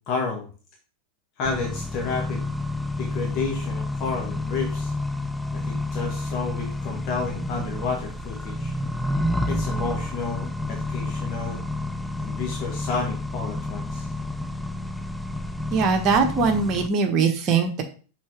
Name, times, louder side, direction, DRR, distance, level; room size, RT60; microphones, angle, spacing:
voice 1, 0.1-0.5 1.4-2.4 3.0-4.9 5.5-8.7 9.5-11.6 12.2-14.0, left 4 dB, 35° left, 0 dB, 1.5 m, -30 dB
Accelerating revving vroom, 1.4-16.9, left 1 dB, 5° left, 0.4 m, -30 dB
voice 2, 15.7-17.8, right 5 dB, 35° right, 4 dB, 1.4 m, -21 dB
6.2 x 4.2 x 4.9 m, 0.38 s
figure-of-eight pair, 90°, 0 cm